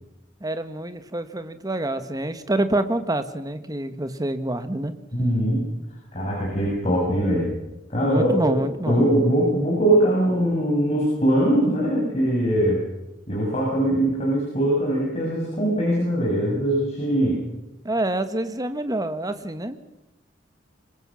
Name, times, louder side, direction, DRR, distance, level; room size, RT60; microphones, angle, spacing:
voice 1, 0.4-4.9 8.0-9.0 17.8-19.9, right 1 dB, 20° right, 10 dB, 1.4 m, -27 dB
voice 2, 5.1-5.6 6.1-7.5 7.9-12.8 13.3-17.4, right 1 dB, 35° left, -4 dB, 6.9 m, -21 dB
25.5 x 21.5 x 6.4 m, 0.95 s
head